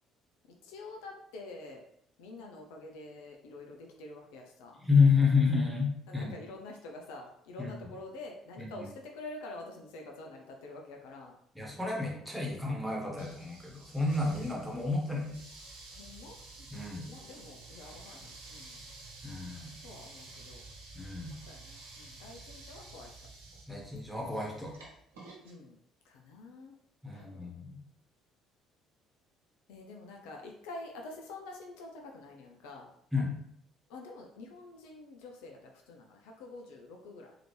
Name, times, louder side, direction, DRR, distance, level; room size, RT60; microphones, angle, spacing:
voice 1, 0.6-1.8 2.2-4.8 6.1-11.3 15.9-18.8 19.8-20.6 21.3-23.2 25.4-25.8 26.0-26.7 27.1-27.5 29.7-32.9 33.9-37.3, left 2 dB, 70° left, 1 dB, 0.5 m, -47 dB
voice 2, 4.8-6.3 7.6-7.7 8.6-8.9 11.5-15.4 16.7-17.0 19.2-19.7 20.9-21.3 23.7-24.7 27.0-27.8 33.1-33.3, left 4 dB, 5° right, -2 dB, 1.3 m, -29 dB
sound 1, 13.2-25.5, right 3 dB, 80° right, 1.0 m, -51 dB
4.0 x 2.8 x 3.2 m, 0.71 s
figure-of-eight pair, 50°, 0 cm